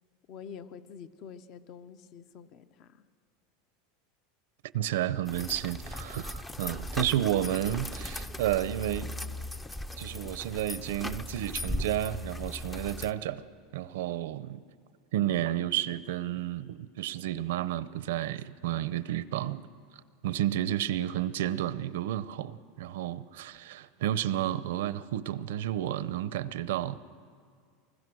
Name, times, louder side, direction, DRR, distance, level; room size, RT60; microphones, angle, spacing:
voice 1, 0.3-3.0, left 7 dB, 45° left, 0.9 m, -47 dB
voice 2, 4.7-9.1 10.0-13.4 13.7-14.6 15.1-19.7 20.2-27.0, right 12 dB, 85° right, 0.7 m, -31 dB
sound 1, 5.3-13.1, left 1 dB, 10° left, 0.6 m, -38 dB
24.5 x 21.0 x 6.4 m
supercardioid pair, 145°, 0 cm